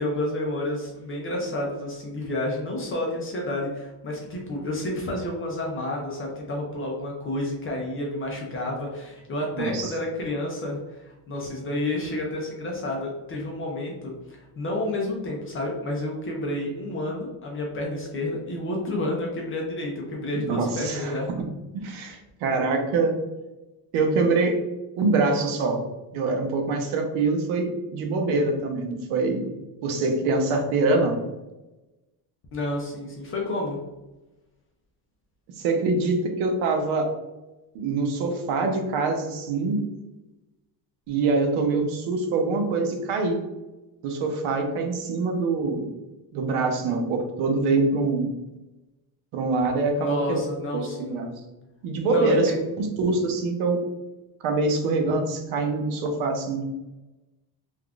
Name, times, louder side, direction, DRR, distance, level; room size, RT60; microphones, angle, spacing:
voice 1, 0.0-21.3 32.5-33.8 50.0-51.2 52.1-52.6, left 1 dB, 30° left, -1 dB, 0.4 m, -30 dB
voice 2, 9.5-9.9 20.3-21.5 21.7-23.2 23.9-24.6 25.0-25.8 26.1-29.5 29.8-31.2 35.6-37.1 37.7-39.8 41.1-43.4 44.0-45.9 46.3-48.3 49.3-50.4 50.7-51.3 51.8-52.5 52.8-53.8 54.4-56.6, right 3 dB, 75° right, 4 dB, 0.8 m, -24 dB
3.5 x 2.4 x 2.3 m, 1.0 s
cardioid pair, 155°, 50 cm